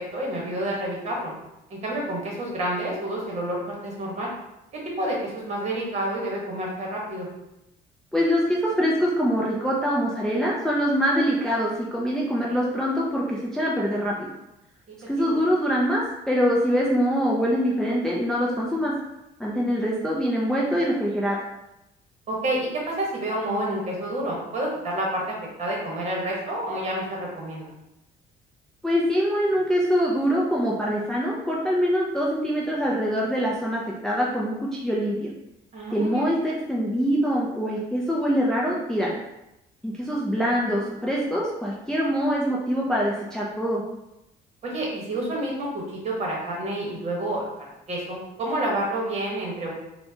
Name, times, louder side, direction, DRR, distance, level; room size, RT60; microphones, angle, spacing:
voice 1, 0.1-1.3 1.7-4.3 5.0-7.3 14.9-15.3 22.3-27.7 35.7-36.2 44.6-49.7, right 1 dB, 40° right, -3 dB, 1.3 m, -29 dB
voice 2, 8.1-14.3 15.1-18.9 19.4-21.4 28.8-35.3 35.9-39.1 39.8-43.8, equal, 5° left, -5 dB, 0.5 m, -24 dB
4.3 x 2.2 x 2.8 m, 0.91 s
cardioid pair, 110°, 17 cm